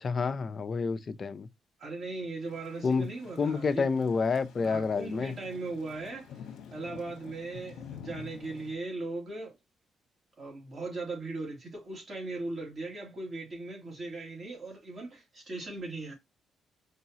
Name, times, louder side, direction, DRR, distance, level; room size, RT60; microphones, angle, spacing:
voice 1, 0.0-1.5 2.8-3.1 3.4-5.3, left 5 dB, 40° left, 0.5 m, -29 dB
voice 2, 1.8-3.9 4.6-9.6 10.4-16.1, right 3 dB, 40° right, 2.7 m, -38 dB
Thunder / Rain, 2.4-8.7, left 7 dB, 80° left, 0.9 m, -49 dB
4.7 x 2.9 x 2.8 m
cardioid pair, 90°, 0 cm